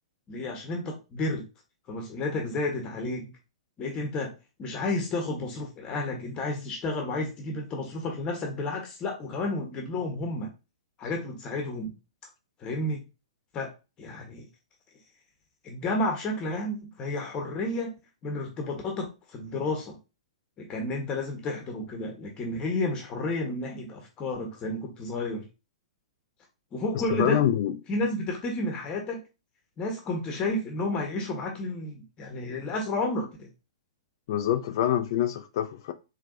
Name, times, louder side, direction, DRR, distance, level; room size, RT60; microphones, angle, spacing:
voice 1, 0.3-1.5 1.9-3.3 3.8-4.3 4.6-10.5 11.0-11.9 12.6-13.0 13.5-13.7 14.0-14.5 15.6-20.0 20.6-25.5 26.7-27.4 27.9-29.2 29.8-33.5, left 2 dB, 25° left, 1.1 m, -31 dB
voice 2, 27.1-27.8 34.3-35.9, left 11 dB, 50° left, 0.4 m, -25 dB
4.6 x 3.3 x 2.6 m
figure-of-eight pair, 110°, 3 cm